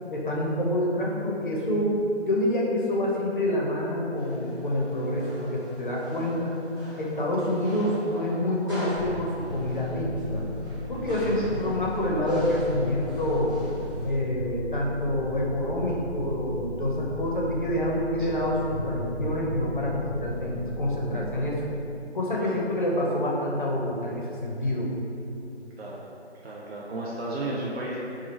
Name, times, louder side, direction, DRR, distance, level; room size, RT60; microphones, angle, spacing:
voice 1, 0.1-2.0 2.3-6.5 7.0-10.4 10.9-13.5 14.0-21.6 22.1-24.9, left 1 dB, 45° left, -4 dB, 0.5 m, -27 dB
sound 1, 4.2-14.2, equal, 20° right, 1.0 m, -43 dB
sound 2, 8.9-21.0, left 1 dB, 50° right, 1.1 m, -35 dB
voice 2, 26.4-28.0, right 2 dB, 65° right, -5 dB, 0.5 m, -34 dB
2.8 x 2.3 x 3.0 m, 2.7 s
figure-of-eight pair, 165°, 34 cm